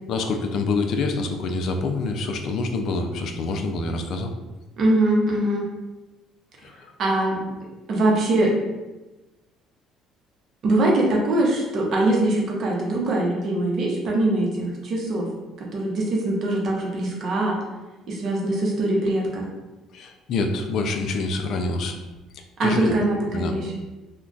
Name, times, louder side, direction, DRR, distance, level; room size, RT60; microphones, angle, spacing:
voice 1, 0.1-4.3 6.6-6.9 19.9-22.0 22.3-23.0 23.3-23.5, left 3 dB, 60° left, 5 dB, 0.3 m, -26 dB
voice 2, 4.8-5.7 7.0-7.5 7.9-8.5 10.6-15.3 15.6-17.6 18.1-19.4 22.6-23.7, right 1 dB, 50° right, -2 dB, 0.7 m, -22 dB
2.3 x 2.2 x 3.8 m, 1.1 s
cardioid pair, 130°, 0 cm